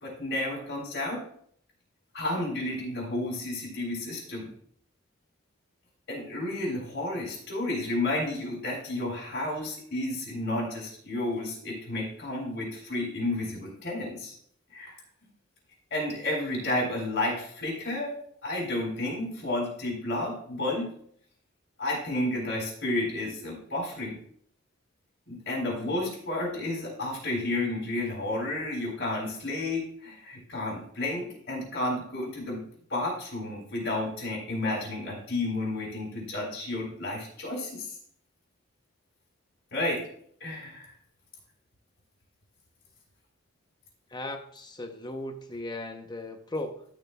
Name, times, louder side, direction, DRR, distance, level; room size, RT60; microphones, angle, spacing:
voice 1, 0.0-1.2 2.1-4.5 6.1-14.3 14.7-15.0 15.9-18.2 18.4-20.9 21.8-24.1 25.3-32.6 32.9-37.9 39.7-40.0 40.4-40.9, left 2 dB, 65° left, 3.8 m, -31 dB
voice 2, 44.1-46.8, left 1 dB, 20° left, 0.8 m, -37 dB
13.5 x 6.3 x 2.4 m
head